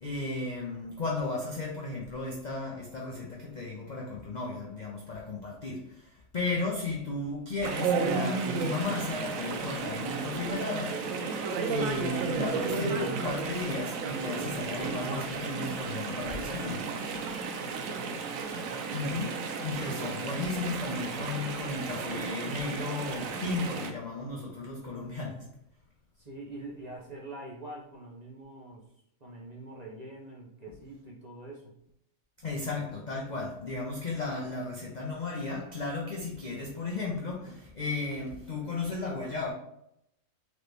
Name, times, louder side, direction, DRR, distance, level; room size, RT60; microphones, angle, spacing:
voice 1, 0.0-5.8 6.3-11.0 11.7-16.9 17.3-17.4 18.9-25.4 32.4-39.5, left 3 dB, 50° left, -2 dB, 0.5 m, -34 dB
Chatter / Stream, 7.6-23.9, right 4 dB, 75° right, 0.9 m, -33 dB
voice 2, 17.6-18.4 18.9-19.0 26.2-28.8 29.2-31.7, right 2 dB, 35° right, -4 dB, 0.7 m, -45 dB
4.0 x 3.1 x 3.3 m, 0.76 s
omnidirectional pair, 1.5 m